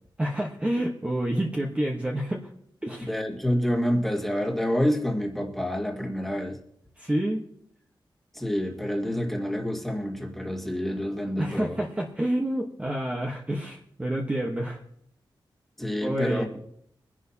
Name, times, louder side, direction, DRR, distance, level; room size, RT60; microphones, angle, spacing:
voice 1, 0.2-2.5 2.8-3.1 7.0-7.4 11.4-14.8 16.0-16.5, right 1 dB, 15° right, -1 dB, 1.1 m, -28 dB
voice 2, 3.0-6.6 8.3-11.8 15.8-16.5, equal, ahead, 1 dB, 1.9 m, -28 dB
23.0 x 11.0 x 2.8 m, 0.70 s
wide cardioid pair, 155°, 9 cm